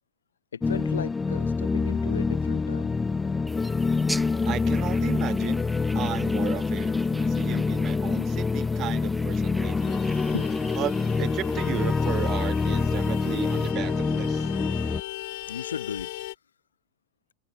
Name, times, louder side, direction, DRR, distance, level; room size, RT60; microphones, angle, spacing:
voice 1, 0.5-2.9 10.3-10.6 15.5-16.1, left 7 dB, 70° left, 2.1 m, -36 dB
sound 1, 0.6-15.0, left 4 dB, 15° left, 0.5 m, -26 dB
sound 2, 3.5-13.7, right 1 dB, 5° right, 1.6 m, -44 dB
voice 2, 4.5-5.7 5.9-10.0 10.8-10.9 11.2-14.5, right 13 dB, 35° right, 0.9 m, -34 dB
Vehicle horn car horn honking, 9.8-16.3, left 19 dB, 50° left, 1.3 m, -39 dB
figure-of-eight pair, 90°, 0 cm